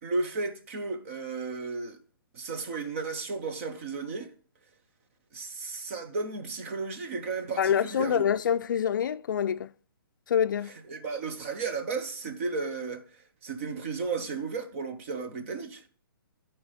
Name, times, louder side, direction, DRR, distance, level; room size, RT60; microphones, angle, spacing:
voice 1, 0.0-2.0 2.3-4.3 5.3-8.3 10.6-15.8, right 4 dB, 35° right, 1.1 m, -34 dB
voice 2, 7.6-9.7 10.3-10.7, left 8 dB, 60° left, 0.4 m, -26 dB
11.0 x 4.5 x 5.0 m
hypercardioid pair, 160°, 12 cm